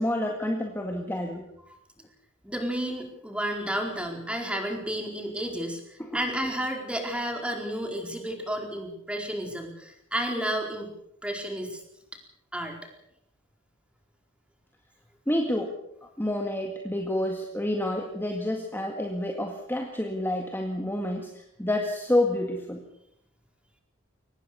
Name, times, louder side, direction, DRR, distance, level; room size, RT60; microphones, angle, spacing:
voice 1, 0.0-1.4 6.0-6.2 15.3-22.8, left 1 dB, 10° left, 3 dB, 1.9 m, -29 dB
voice 2, 2.4-10.9 11.2-11.8 12.5-12.7, right 1 dB, 5° right, 2 dB, 4.5 m, -31 dB
23.5 x 19.5 x 6.8 m, 0.78 s
head